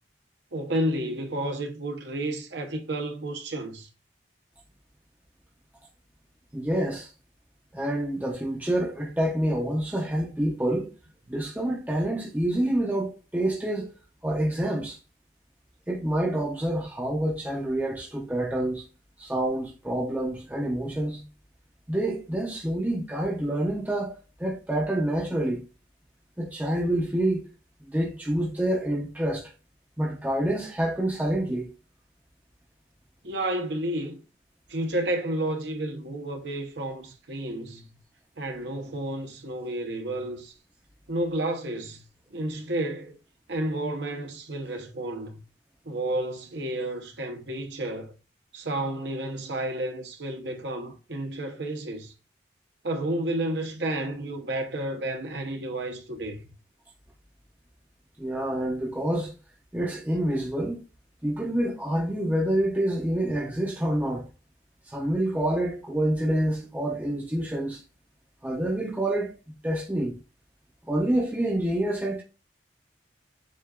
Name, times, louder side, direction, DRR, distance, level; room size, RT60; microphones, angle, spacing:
voice 1, 0.5-3.9 33.2-34.2 34.7-38.0 38.4-40.5 41.1-42.0 42.3-43.2 43.5-45.4 45.8-48.1 48.5-52.1 52.8-56.4, right 1 dB, 70° right, 0.9 m, -31 dB
voice 2, 6.5-7.1 7.7-10.9 11.3-13.9 14.2-15.0 15.9-18.9 19.2-21.2 21.9-25.6 26.4-27.5 27.9-29.5 30.0-31.7 58.2-59.3 59.7-60.8 61.2-64.3 64.9-67.8 68.4-69.4 69.6-70.2 70.9-72.2, right 1 dB, 10° right, 0.6 m, -27 dB
7.5 x 2.5 x 2.4 m
head